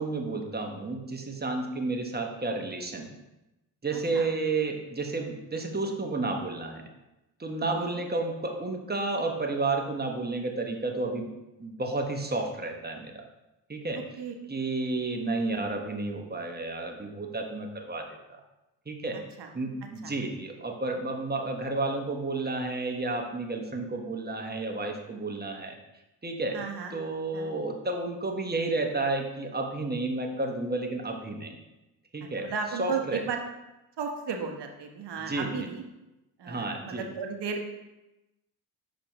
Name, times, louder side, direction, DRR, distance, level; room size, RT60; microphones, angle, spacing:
voice 1, 0.0-3.1 3.8-6.8 7.4-11.3 11.6-13.2 13.7-14.0 14.5-18.0 18.9-19.2 19.5-25.8 26.2-26.6 26.9-31.6 32.1-32.5 32.8-33.2 35.2-35.7 36.4-37.0, right 3 dB, 20° right, 3 dB, 1.1 m, -31 dB
voice 2, 3.9-4.3 7.8-8.0 13.9-14.3 14.9-15.0 19.1-19.5 20.0-20.1 26.5-26.9 27.3-27.5 32.4-33.4 34.0-35.8 36.4-37.7, right 5 dB, 55° right, 3 dB, 1.2 m, -35 dB
6.8 x 5.1 x 3.0 m, 0.97 s
hypercardioid pair, 50°, 49 cm